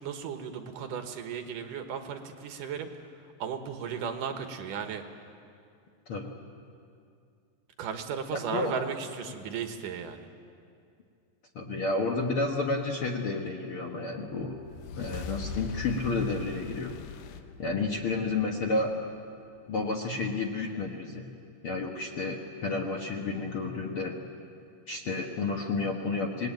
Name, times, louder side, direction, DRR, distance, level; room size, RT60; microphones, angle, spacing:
voice 1, 0.0-3.1 3.4-5.0 7.8-10.2, right 7 dB, 70° right, 6 dB, 2.7 m, -35 dB
voice 2, 11.5-14.5 15.0-16.9 17.6-18.9 19.7-21.2 21.6-24.1 24.9-26.5, left 3 dB, 50° left, 1 dB, 1.7 m, -31 dB
sound 1, 14.5-18.9, left 5 dB, 90° left, 2.9 m, -41 dB
27.0 x 20.0 x 9.1 m, 2.4 s
omnidirectional pair, 4.1 m